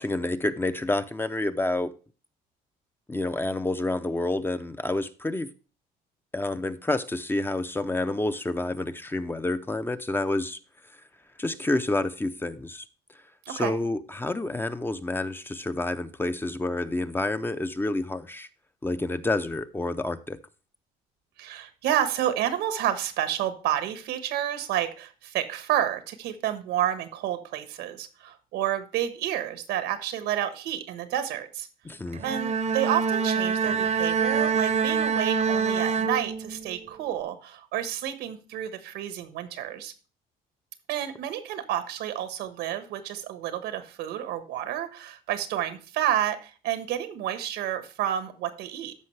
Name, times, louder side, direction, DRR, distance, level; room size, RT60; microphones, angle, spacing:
voice 1, 0.0-1.9 3.1-5.5 6.3-10.6 11.4-12.8 13.5-18.5 18.8-20.4 31.9-32.2, left 2 dB, 15° left, 0.6 m, -29 dB
voice 2, 21.4-31.7 32.2-39.9 40.9-48.9, right 11 dB, 85° right, 1.3 m, -30 dB
Bowed string instrument, 32.1-36.8, right 5 dB, 40° right, 0.8 m, -25 dB
13.5 x 5.3 x 3.2 m
cardioid pair, 110°, 17 cm